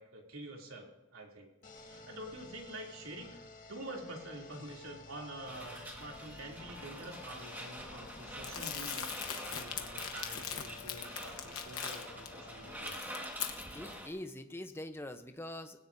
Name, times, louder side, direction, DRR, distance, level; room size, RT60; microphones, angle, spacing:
voice 1, 0.0-1.5 1.8-3.4 3.7-13.0, right 1 dB, 80° right, 0 dB, 3.0 m, -47 dB
sound 1, 1.6-12.9, left 3 dB, 40° left, 2.0 m, -53 dB
sound 2, 5.5-14.1, equal, 10° right, 1.7 m, -46 dB
Crumpling crinkling, 8.4-12.3 12.7-13.9, left 9 dB, 80° left, 1.1 m, -41 dB
voice 2, 13.5-15.8, left 1 dB, 10° left, 7 dB, 0.8 m, -44 dB
20.5 x 17.0 x 2.7 m, 0.93 s
head